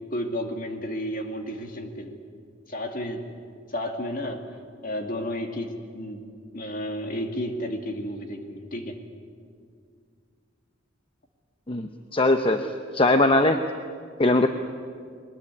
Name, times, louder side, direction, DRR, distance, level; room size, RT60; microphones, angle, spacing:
voice 1, 0.1-2.1 2.7-3.3 3.7-4.4 4.8-6.2 6.5-9.0, equal, 45° left, 3 dB, 2.4 m, -32 dB
voice 2, 11.7-12.7 12.9-13.6 14.2-14.5, left 2 dB, 30° left, 7 dB, 0.8 m, -20 dB
22.0 x 20.5 x 9.7 m, 2.2 s
head